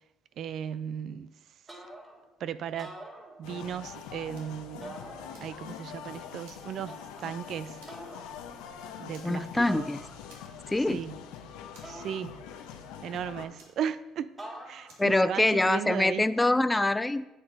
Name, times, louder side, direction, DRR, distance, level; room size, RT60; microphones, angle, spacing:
voice 1, 0.4-1.3 2.4-3.0 3.4-5.0 5.4-7.8 9.0-9.9 10.9-11.2 11.9-12.4 13.0-14.3 14.7-16.2, right 9 dB, 60° right, 0.5 m, -36 dB
sound 1, 1.7-2.3 2.7-3.8 4.8-5.7 6.9-7.4 7.9-8.4 9.7-10.5 11.8-12.8 14.4-15.1, right 1 dB, 30° right, 3.2 m, -46 dB
sound 2, 3.4-13.4, left 8 dB, 85° left, 0.9 m, -44 dB
Fire, 4.3-4.7 5.1-6.0 6.4-7.4 7.8-8.2 8.5-8.7 9.1-9.8 10.3-10.9 11.1-11.2 11.7-12.5 13.6-14.4 14.9-15.2, right 3 dB, 90° right, 2.2 m, -57 dB
voice 2, 9.2-10.0 10.7-11.0 15.0-17.3, left 2 dB, 15° left, 0.3 m, -25 dB
9.2 x 7.9 x 4.0 m
supercardioid pair, 80°, 0 cm